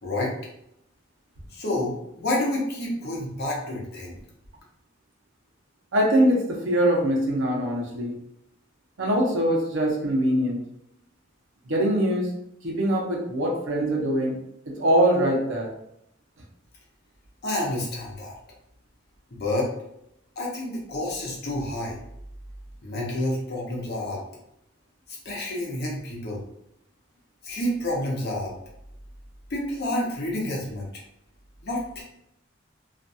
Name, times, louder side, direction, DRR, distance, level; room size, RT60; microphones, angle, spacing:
voice 1, 0.0-0.3 1.5-4.2 17.4-18.3 19.3-19.7 20.4-22.0 22.8-24.2 25.2-26.4 27.4-28.5 29.5-30.9 31.6-32.0, left 1 dB, 55° left, -2 dB, 0.8 m, -29 dB
voice 2, 5.9-8.1 9.0-10.6 11.7-12.3 12.6-14.4 14.7-15.7, right 1 dB, 70° right, -1 dB, 0.7 m, -23 dB
2.5 x 2.3 x 2.6 m, 0.77 s
head